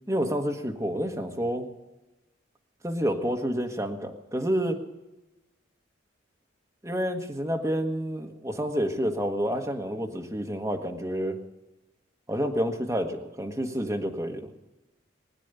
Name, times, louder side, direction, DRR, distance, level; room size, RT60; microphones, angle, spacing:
voice 1, 0.1-1.7 2.8-4.8 6.8-11.4 12.3-14.5, equal, 15° right, 2 dB, 1.3 m, -29 dB
20.5 x 9.6 x 6.8 m, 1.0 s
head